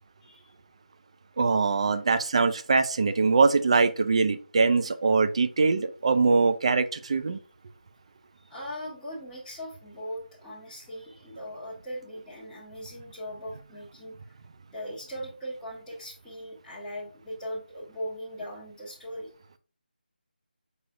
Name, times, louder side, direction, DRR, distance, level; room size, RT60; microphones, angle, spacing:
voice 1, 0.2-0.5 8.5-14.2 14.7-19.3, equal, 5° left, -8 dB, 1.3 m, -39 dB
voice 2, 1.4-7.4, right 4 dB, 35° right, 10 dB, 0.4 m, -23 dB
6.0 x 3.3 x 2.4 m, 0.40 s
figure-of-eight pair, 160°, 5 cm